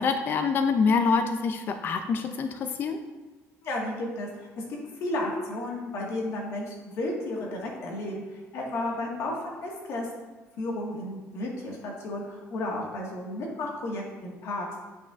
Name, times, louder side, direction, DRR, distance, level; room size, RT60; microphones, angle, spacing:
voice 1, 0.0-3.0, left 5 dB, 40° left, 7 dB, 0.4 m, -25 dB
voice 2, 3.6-10.1 10.6-14.7, left 1 dB, 60° left, -1 dB, 1.6 m, -33 dB
8.8 x 5.6 x 2.4 m, 1.2 s
cardioid pair, 155°, 5 cm